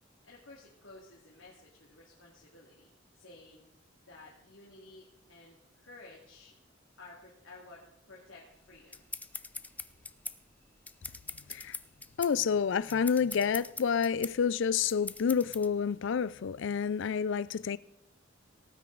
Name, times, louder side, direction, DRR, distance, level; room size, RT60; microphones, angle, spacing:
voice 1, 0.2-2.9 3.1-3.7 4.0-6.5 7.0-9.1, left 2 dB, 90° left, 2.3 m, -54 dB
sound 1, 8.5-15.7, left 3 dB, 10° left, 0.4 m, -43 dB
voice 2, 12.2-17.8, left 6 dB, 65° left, 0.4 m, -29 dB
17.5 x 9.1 x 3.9 m
head